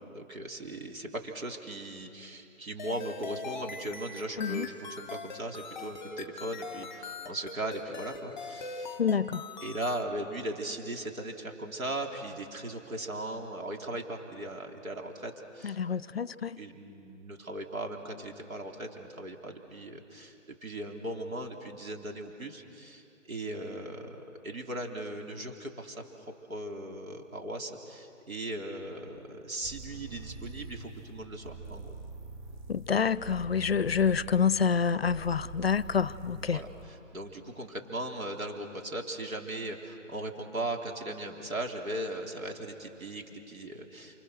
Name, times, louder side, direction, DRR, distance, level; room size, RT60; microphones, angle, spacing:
voice 1, 0.1-9.0 9.6-15.8 16.6-32.0 36.4-44.2, right 1 dB, 90° right, 3.6 m, -38 dB
sound 1, 2.8-10.0, left 4 dB, 5° left, 1.1 m, -41 dB
voice 2, 9.0-9.4 15.6-16.6 32.7-36.6, left 6 dB, 50° left, 0.6 m, -27 dB
sound 2, 29.6-36.9, right 3 dB, 35° right, 3.0 m, -45 dB
28.5 x 27.0 x 6.4 m
hypercardioid pair, 165°, 40 cm